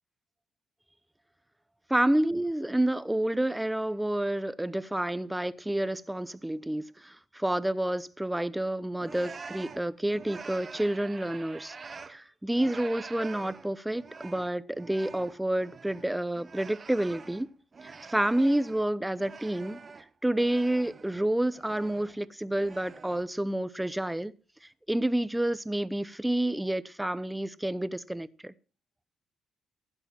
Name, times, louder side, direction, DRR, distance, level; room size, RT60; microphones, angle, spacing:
voice 1, 1.9-11.8 12.1-17.5 17.8-19.8 20.2-24.3 24.9-28.5, right 1 dB, 5° right, 0.8 m, -29 dB
sound 1, 9.0-12.2 12.5-18.9 19.1-21.2 21.5-22.2 22.5-23.3, right 5 dB, 35° right, 1.1 m, -46 dB
15.0 x 7.8 x 6.1 m
cardioid pair, 90°, 0 cm